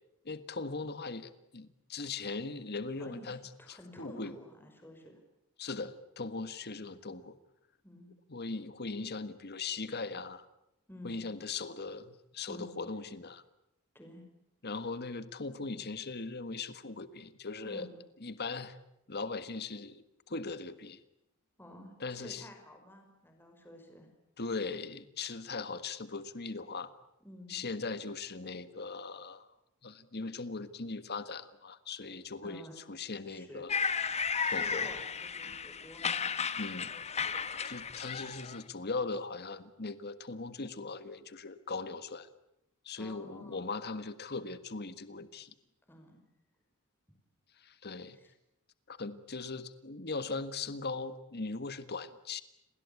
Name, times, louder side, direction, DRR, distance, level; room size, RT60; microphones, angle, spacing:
voice 1, 0.2-3.4 3.7-4.3 5.6-7.3 8.3-10.5 11.0-13.4 14.6-17.8 18.2-18.8 19.1-21.0 22.0-22.4 24.4-26.9 27.5-29.5 29.8-32.6 32.9-33.8 34.4-34.9 36.6-36.9 37.6-42.3 42.8-45.5 47.6-48.2 48.9-52.4, left 3 dB, 50° left, 12 dB, 1.5 m, -39 dB
voice 2, 3.0-5.2 7.8-8.1 10.9-11.2 12.5-12.7 13.9-14.2 17.6-17.9 21.6-24.1 27.2-27.5 32.4-32.8 33.3-33.6 34.5-36.2 43.0-43.6 45.9-46.2 48.1-48.3, left 1 dB, 10° left, 3 dB, 5.6 m, -50 dB
sound 1, 33.7-38.6, left 6 dB, 30° left, 1.1 m, -34 dB
30.0 x 20.5 x 8.5 m, 0.85 s
head